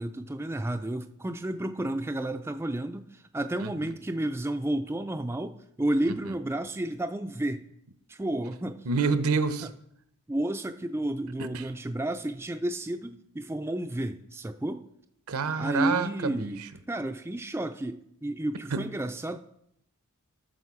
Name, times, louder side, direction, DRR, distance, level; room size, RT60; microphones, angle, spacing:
voice 1, 0.0-7.6 8.1-8.8 9.6-9.7 10.3-14.9 15.6-16.6 16.9-19.4, right 1 dB, 10° right, 7 dB, 0.3 m, -31 dB
voice 2, 6.1-6.4 8.9-9.7 11.4-11.6 15.3-16.5 18.7-18.9, right 4 dB, 80° right, 11 dB, 0.8 m, -28 dB
14.0 x 6.3 x 4.8 m, 0.74 s
head